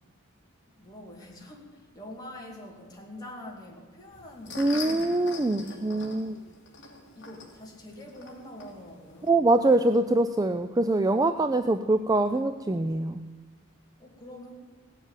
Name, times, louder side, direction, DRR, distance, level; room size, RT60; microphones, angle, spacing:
voice 1, 0.8-6.0 7.1-9.8 10.5-11.2 14.0-14.5, left 1 dB, 20° left, -1 dB, 2.7 m, -45 dB
sound 1, 4.1-9.3, left 4 dB, 55° left, 2.7 m, -43 dB
voice 2, 4.6-6.4 9.3-13.2, right 2 dB, 15° right, 9 dB, 0.4 m, -24 dB
17.0 x 7.3 x 9.2 m, 1.4 s
head